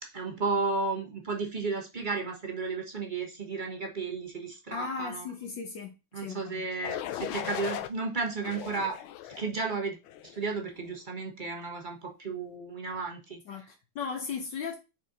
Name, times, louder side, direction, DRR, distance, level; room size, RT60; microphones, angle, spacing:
voice 1, 0.0-5.2 6.1-9.0 9.4-10.0 10.2-13.4, right 4 dB, 30° right, 1.0 m, -33 dB
voice 2, 4.7-5.9 6.2-6.6 13.5-14.8, left 5 dB, 65° left, 1.5 m, -36 dB
sound 1, 6.8-7.9 8.4-9.5 10.1-10.4, left 12 dB, 90° left, 1.4 m, -37 dB
6.3 x 4.2 x 4.1 m
omnidirectional pair, 2.2 m